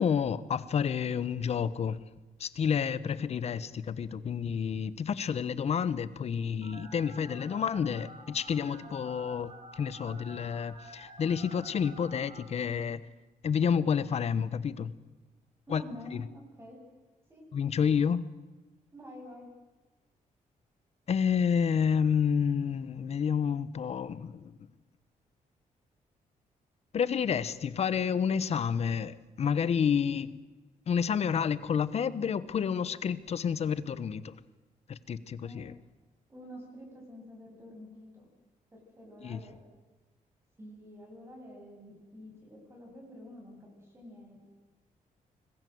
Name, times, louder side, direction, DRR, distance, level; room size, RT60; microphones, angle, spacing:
voice 1, 0.0-2.0 2.4-13.0 13.4-14.9 15.7-15.8 16.1-16.2 17.5-18.3 21.1-24.4 26.9-30.4 30.9-34.4 34.9-35.7 39.2-39.4, left 7 dB, 50° left, 1.1 m, -29 dB
Telephone, 6.6-12.4, right 1 dB, 55° right, 6.8 m, -50 dB
voice 2, 15.7-16.8 17.3-17.4 18.9-19.5 35.4-35.6 36.3-38.3 38.7-39.6 40.6-44.4, left 1 dB, 20° right, 7.8 m, -48 dB
25.5 x 21.0 x 7.9 m
wide cardioid pair, 150°, 14 cm